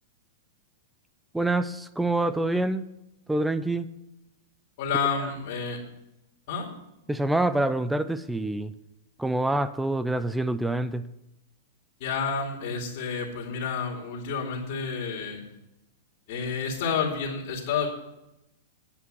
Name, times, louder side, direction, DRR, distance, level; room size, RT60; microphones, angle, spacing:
voice 1, 1.3-2.9 3.3-3.9 7.1-8.7 9.2-11.0, right 2 dB, 5° right, 13 dB, 0.4 m, -26 dB
voice 2, 4.8-5.8 6.5-6.7 12.0-15.4 16.3-17.9, left 5 dB, 55° left, -3 dB, 2.7 m, -29 dB
9.6 x 5.7 x 7.8 m, 0.90 s
hypercardioid pair, 145°, 0 cm